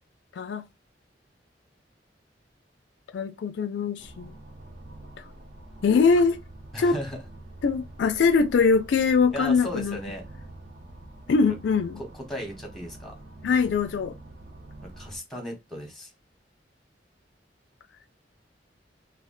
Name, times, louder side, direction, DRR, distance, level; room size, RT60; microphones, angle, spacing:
voice 1, 3.1-4.3 5.8-6.4 6.8-7.0 7.6-10.0 11.3-12.0 13.4-14.1, left 5 dB, 70° left, 0.3 m, -22 dB
sound 1, 4.0-15.2, right 1 dB, 55° right, 0.7 m, -46 dB
voice 2, 6.7-7.2 9.3-10.2 12.0-13.1 15.0-16.1, equal, ahead, 0.9 m, -36 dB
2.3 x 2.1 x 3.7 m
head